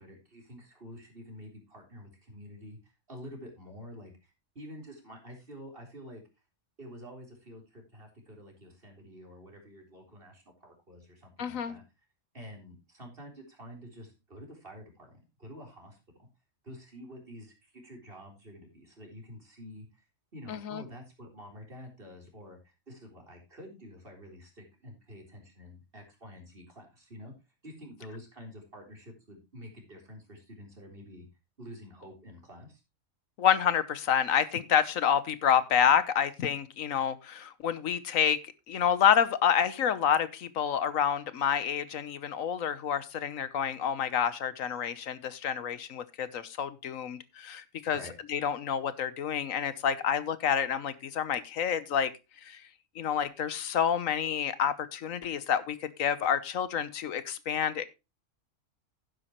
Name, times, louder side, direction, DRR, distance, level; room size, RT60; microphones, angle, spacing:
voice 1, 0.0-2.8 3.1-6.2 6.8-11.8 12.3-16.3 16.6-20.0 20.3-27.3 27.6-31.3 31.6-32.8 47.9-48.1, equal, 45° right, 1 dB, 4.2 m, -48 dB
voice 2, 11.4-11.7 20.5-20.8 33.4-38.4 38.7-48.0 48.3-52.1 52.4-52.6 53.0-57.8, left 8 dB, 85° left, 15 dB, 1.3 m, -28 dB
11.5 x 10.0 x 3.0 m, 0.26 s
omnidirectional pair, 1.4 m